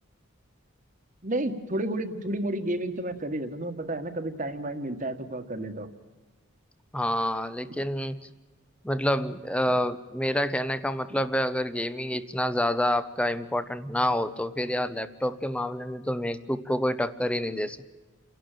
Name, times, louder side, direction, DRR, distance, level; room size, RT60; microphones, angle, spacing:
voice 1, 1.2-5.9, right 1 dB, 40° right, 8 dB, 1.6 m, -31 dB
voice 2, 6.9-8.2 8.8-17.9, left 1 dB, 5° left, 13 dB, 0.8 m, -28 dB
29.0 x 11.5 x 9.1 m, 1.3 s
head